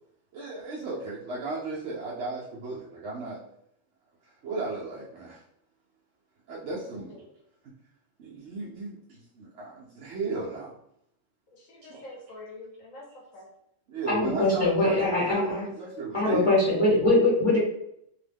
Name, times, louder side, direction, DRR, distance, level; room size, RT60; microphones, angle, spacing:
voice 1, 0.3-3.4 4.4-5.4 6.5-7.2 8.2-10.7 11.8-12.0 13.9-16.5, right 3 dB, 70° right, -6 dB, 0.9 m, -35 dB
voice 2, 11.5-13.5, left 2 dB, 85° left, -3 dB, 1.3 m, -46 dB
voice 3, 14.1-15.6 16.1-17.6, left 2 dB, 30° left, -8 dB, 0.8 m, -22 dB
2.9 x 2.1 x 3.3 m, 0.75 s
omnidirectional pair, 1.3 m